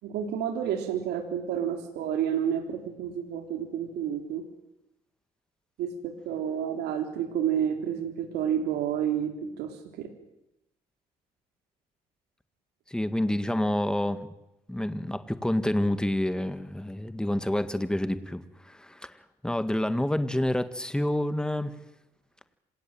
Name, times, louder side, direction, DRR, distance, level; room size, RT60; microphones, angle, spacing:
voice 1, 0.0-4.4 5.8-10.1, right 9 dB, 80° right, 4 dB, 4.0 m, -30 dB
voice 2, 12.9-14.3 14.7-19.2 19.4-21.7, left 1 dB, 5° left, 11 dB, 1.8 m, -28 dB
26.5 x 17.5 x 9.3 m, 0.88 s
cardioid pair, 110°, 17 cm